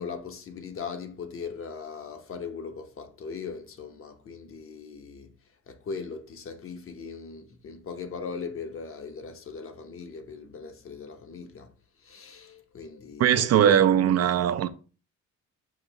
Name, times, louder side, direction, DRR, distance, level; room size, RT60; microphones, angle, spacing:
voice 1, 0.0-5.3 5.7-11.7 12.0-13.8, left 5 dB, 45° left, 0.8 m, -39 dB
voice 2, 13.2-14.7, right 10 dB, 55° right, 0.5 m, -20 dB
5.1 x 2.6 x 3.9 m
cardioid pair, 90°, 30 cm